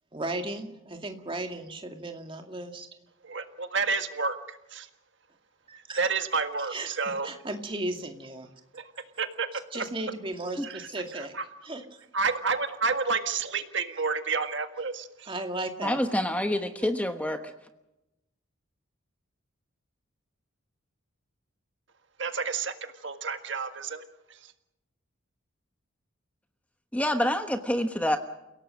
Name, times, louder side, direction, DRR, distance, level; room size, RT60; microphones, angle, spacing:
voice 1, 0.1-2.9 5.7-6.0 6.7-8.5 9.7-11.3 11.6-12.1 15.3-16.0, right 2 dB, 25° right, 4 dB, 2.2 m, -35 dB
voice 2, 3.2-4.9 5.9-7.3 8.7-8.9 9.2-9.5 10.6-10.9 11.2-11.4 12.1-15.3 22.2-24.0, right 4 dB, 60° right, 8 dB, 1.7 m, -30 dB
voice 3, 15.8-17.4 26.9-28.2, left 1 dB, 5° left, 7 dB, 1.1 m, -27 dB
30.0 x 17.5 x 6.4 m, 0.91 s
head